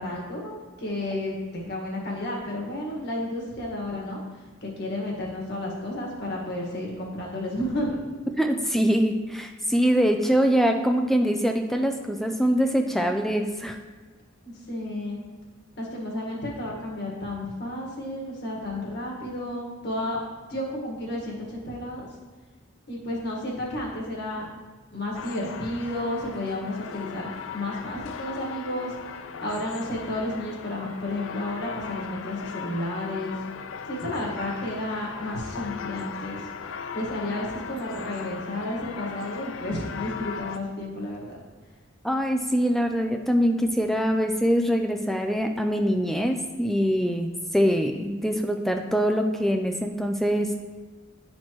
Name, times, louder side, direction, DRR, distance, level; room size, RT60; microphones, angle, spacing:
voice 1, 0.0-4.2 4.6-7.9 14.4-15.2 15.8-20.2 20.5-22.1 22.9-24.5 24.9-28.9 29.4-33.4 33.9-36.4 36.9-41.3, left 1 dB, 55° left, -2 dB, 1.7 m, -32 dB
voice 2, 8.4-13.8 42.0-50.5, equal, ahead, 4 dB, 0.3 m, -23 dB
sound 1, 25.1-40.6, left 6 dB, 80° left, 0.4 m, -38 dB
11.0 x 4.3 x 3.0 m, 1.4 s
head